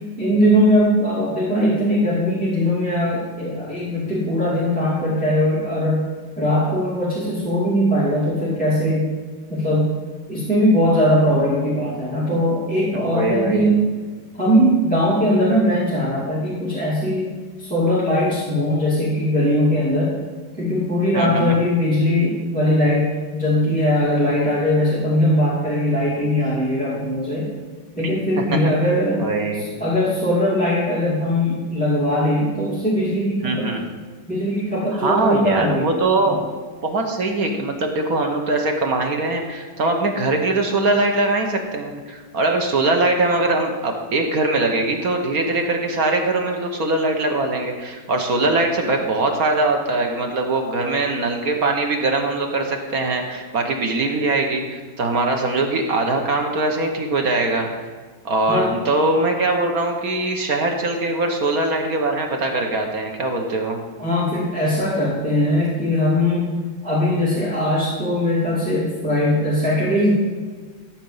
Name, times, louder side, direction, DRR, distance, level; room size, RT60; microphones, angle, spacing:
voice 1, 0.2-6.0 6.4-9.1 9.5-9.9 10.3-13.8 14.4-20.2 20.6-27.5 27.9-29.2 29.5-33.7 34.3-35.9 58.5-58.7 64.0-66.5 66.8-70.1, left 1 dB, 5° left, -9 dB, 2.3 m, -20 dB
voice 2, 12.9-13.7 21.1-21.6 28.5-28.7 29.2-29.7 33.4-33.8 34.9-36.5 36.8-57.9 58.2-63.8, right 2 dB, 50° right, 3 dB, 1.3 m, -22 dB
13.0 x 4.4 x 7.1 m, 1.5 s
omnidirectional pair, 2.2 m